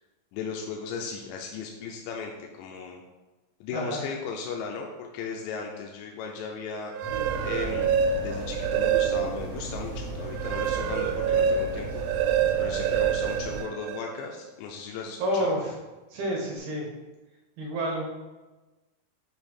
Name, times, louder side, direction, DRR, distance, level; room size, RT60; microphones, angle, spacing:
voice 1, 0.3-2.3 2.6-3.0 3.6-6.9 7.4-12.0 12.6-15.5, left 5 dB, 85° left, 1 dB, 2.8 m, -36 dB
sound 1, 6.8-9.5 9.9-14.3, right 8 dB, 90° right, 2.8 m, -27 dB
sound 2, 7.0-13.6, right 1 dB, 45° left, 1.1 m, -37 dB
sound 3, 7.1-12.7, right 1 dB, 50° right, 1.1 m, -45 dB
voice 2, 15.2-15.7 16.1-16.9 17.6-18.1, equal, 65° right, -3 dB, 2.8 m, -29 dB
7.9 x 3.2 x 4.3 m, 1.1 s
omnidirectional pair, 5.1 m